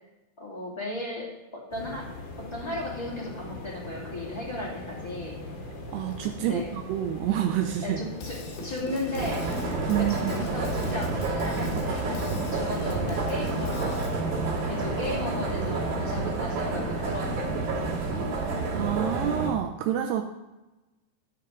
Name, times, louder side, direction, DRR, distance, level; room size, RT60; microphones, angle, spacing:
voice 1, 0.4-2.1 2.5-5.3 6.3-6.7 7.8-9.5 10.0-14.1 14.7-18.0, left 1 dB, 10° left, -4 dB, 1.3 m, -36 dB
sound 1, 1.7-16.0, left 2 dB, 50° left, 2.2 m, -40 dB
voice 2, 5.9-8.0 9.9-10.3 18.5-20.2, right 11 dB, 85° right, 5 dB, 2.4 m, -28 dB
Drum kit / Drum, 8.2-14.2, left 2 dB, 70° left, 3.7 m, -40 dB
sound 2, 9.2-19.5, right 3 dB, 45° right, 3.3 m, -29 dB
13.0 x 4.8 x 6.0 m, 1.1 s
omnidirectional pair, 5.3 m